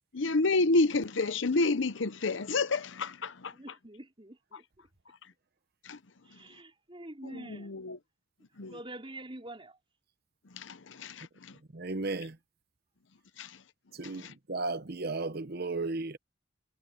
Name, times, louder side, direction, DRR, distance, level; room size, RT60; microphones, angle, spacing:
voice 1, 0.1-3.5 5.8-6.0 7.3-8.0 8.6-8.7 10.5-11.6 13.4-13.6 14.0-14.3, left 3 dB, 65° left, 0.8 m, -30 dB
voice 2, 3.5-4.6 6.2-7.8 8.7-9.8, right 1 dB, 25° right, 5.2 m, -46 dB
voice 3, 11.7-12.4 13.9-16.2, right 3 dB, 50° right, 1.0 m, -34 dB
head